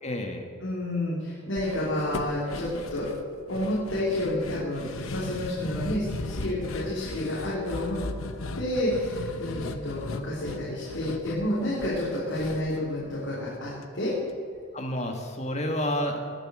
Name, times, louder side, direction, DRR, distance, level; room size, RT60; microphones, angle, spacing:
voice 1, 0.0-0.5 14.7-16.2, left 1 dB, 30° left, 3 dB, 1.7 m, -30 dB
voice 2, 0.6-3.1 3.5-8.0 8.5-14.1, left 1 dB, 65° left, -7 dB, 3.4 m, -30 dB
sound 1, 1.6-13.8 14.1-14.2 14.6-14.7, left 2 dB, 85° left, 1.0 m, -37 dB
20.0 x 7.7 x 6.3 m, 2.3 s
head